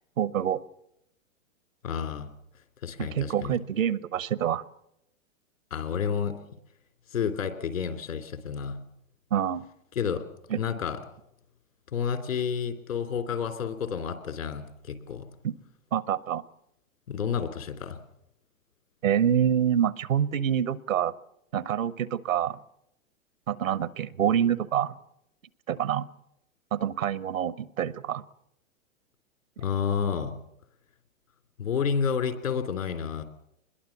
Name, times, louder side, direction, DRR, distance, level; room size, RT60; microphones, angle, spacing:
voice 1, 0.2-0.6 3.0-4.6 9.3-9.6 10.5-10.6 15.4-15.6 15.9-16.4 19.0-21.1 21.5-22.6 23.5-24.9 25.7-26.1 26.7-28.2, right 9 dB, 80° right, 18 dB, 1.1 m, -26 dB
voice 2, 1.8-2.3 2.8-3.6 5.7-6.3 7.1-8.8 9.9-10.2 10.6-11.0 11.9-15.3 17.1-18.0 29.6-30.4 31.6-33.2, left 7 dB, 80° left, 8 dB, 3.2 m, -30 dB
24.5 x 21.0 x 7.2 m, 0.81 s
hypercardioid pair, 110°, 40 cm